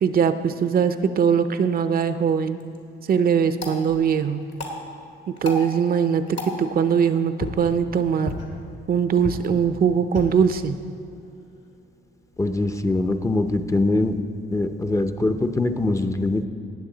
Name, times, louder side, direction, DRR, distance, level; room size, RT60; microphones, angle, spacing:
voice 1, 0.0-2.6 3.1-4.4 5.4-8.3 8.9-10.8, right 7 dB, 50° right, 10 dB, 0.6 m, -21 dB
sound 1, 2.5-12.5, left 2 dB, 65° left, 2.0 m, -37 dB
voice 2, 12.4-14.2 14.5-16.5, left 2 dB, 15° left, 7 dB, 0.6 m, -23 dB
18.0 x 7.0 x 3.9 m, 2.7 s
cardioid pair, 90°, 20 cm